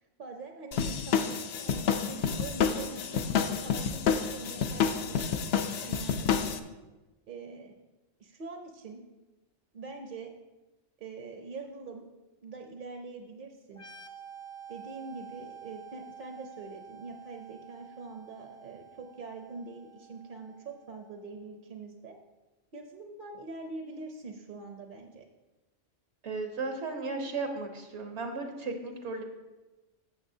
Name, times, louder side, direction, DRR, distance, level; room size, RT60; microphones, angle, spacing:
voice 1, 0.2-6.3 7.3-7.8 8.2-9.0 9.7-10.3 11.0-12.0 12.4-13.8 14.7-22.2 22.7-25.2, right 3 dB, 50° right, 4 dB, 0.8 m, -44 dB
sound 1, 0.7-6.6, left 7 dB, 65° left, 0.8 m, -29 dB
sound 2, 13.7-21.2, right 7 dB, 35° left, 0.6 m, -49 dB
voice 2, 26.2-29.2, right 3 dB, 75° right, 4 dB, 1.3 m, -35 dB
14.0 x 6.9 x 2.7 m, 1.1 s
omnidirectional pair, 1.2 m